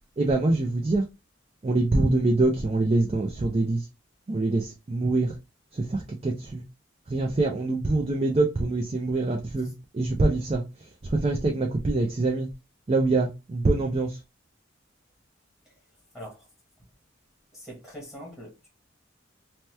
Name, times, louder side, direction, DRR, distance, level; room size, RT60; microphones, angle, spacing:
voice 1, 0.2-1.0 1.6-3.9 4.3-5.3 5.7-6.6 7.1-10.6 11.0-12.5 12.9-14.2, right 2 dB, 30° right, 0.4 m, -24 dB
voice 2, 16.1-16.5 17.5-18.7, equal, 5° right, 1.0 m, -42 dB
2.8 x 2.2 x 3.2 m
head